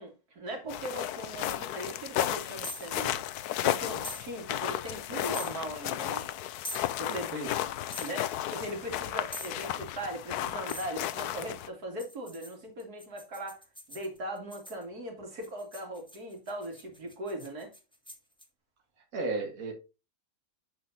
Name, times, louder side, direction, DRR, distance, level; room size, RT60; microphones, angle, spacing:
voice 1, 0.0-3.2 3.6-6.3 7.0-7.4 8.0-13.6 13.9-17.7, right 1 dB, 85° right, 2.9 m, -39 dB
sound 1, 0.7-11.7, left 12 dB, 85° left, 1.1 m, -34 dB
sound 2, 2.6-2.9 4.0-4.2 5.3-5.6 6.6-6.9 7.9-8.1 9.3-9.6 10.7-10.9 12.0-14.8 15.4-18.4, equal, 5° left, 1.5 m, -43 dB
voice 2, 7.1-7.5 19.1-19.7, right 2 dB, 60° right, 2.1 m, -34 dB
7.9 x 7.6 x 2.7 m
omnidirectional pair, 1.6 m